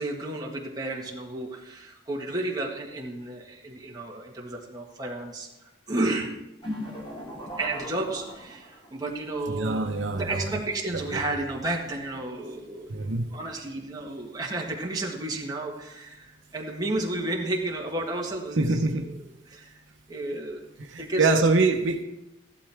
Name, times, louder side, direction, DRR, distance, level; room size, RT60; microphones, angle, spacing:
voice 1, 0.0-5.5 5.9-6.3 7.6-18.8 19.1-19.2 19.5-19.8 20.1-20.6 21.0-21.4, right 2 dB, 20° right, -2 dB, 1.6 m, -32 dB
sound 1, 6.6-9.0, equal, 25° left, 3.1 m, -38 dB
voice 2, 9.5-10.6 10.9-11.2 12.9-13.3 18.6-19.1 20.8-22.0, right 3 dB, 75° right, 5 dB, 0.9 m, -25 dB
14.5 x 11.5 x 3.5 m, 0.96 s
head